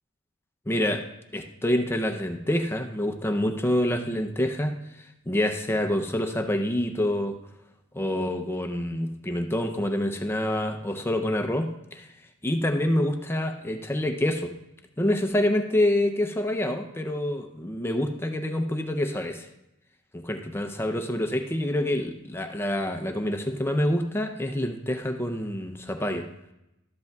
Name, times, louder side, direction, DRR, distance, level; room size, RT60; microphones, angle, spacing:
voice 1, 0.7-1.0 1.3-4.7 5.3-7.4 7.9-12.1 12.4-14.5 15.0-19.5 20.2-26.3, left 1 dB, 10° left, 5 dB, 0.6 m, -27 dB
13.0 x 8.0 x 2.3 m, 0.87 s
head